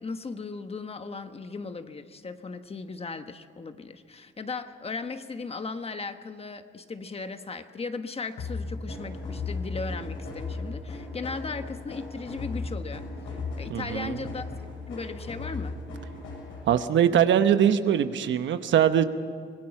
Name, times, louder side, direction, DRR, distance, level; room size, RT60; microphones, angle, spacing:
voice 1, 0.0-14.5 14.9-15.8, left 4 dB, 30° left, 9 dB, 1.3 m, -37 dB
sound 1, 8.4-16.8, left 3 dB, 90° left, 7.3 m, -36 dB
voice 2, 13.7-14.3 16.7-19.0, right 9 dB, 70° right, 10 dB, 1.1 m, -22 dB
25.5 x 18.5 x 6.0 m, 2.1 s
cardioid pair, 90°, 20 cm